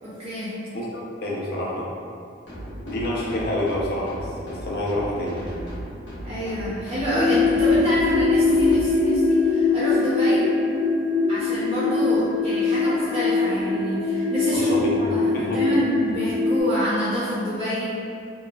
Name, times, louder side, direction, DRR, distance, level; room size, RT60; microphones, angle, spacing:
voice 1, 0.0-0.5 6.2-10.5 11.3-14.9 15.1-17.9, right 1 dB, 30° right, -10 dB, 0.4 m, -27 dB
voice 2, 0.7-1.9 2.9-5.4 14.5-15.0 15.3-15.6, left 1 dB, 55° left, -4 dB, 0.5 m, -27 dB
sound 1, 2.5-8.9, equal, 75° left, 0.9 m, -36 dB
sound 2, 7.1-16.6, left 4 dB, 85° right, 0.7 m, -22 dB
2.8 x 2.3 x 2.2 m, 2.3 s
head